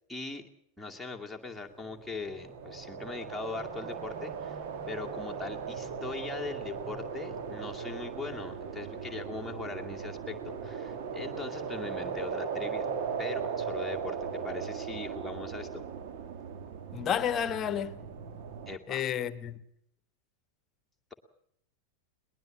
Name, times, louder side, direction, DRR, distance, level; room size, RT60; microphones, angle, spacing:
voice 1, 0.1-0.4 0.8-4.6 4.9-12.9 13.2-15.8 18.7-19.0, left 4 dB, ahead, 2.4 m, -40 dB
sound 1, 1.8-18.8, right 6 dB, 45° right, 2.1 m, -38 dB
voice 2, 16.9-18.0 18.9-19.6, left 9 dB, 30° left, 1.3 m, -31 dB
22.0 x 20.0 x 7.5 m
figure-of-eight pair, 90°, 0 cm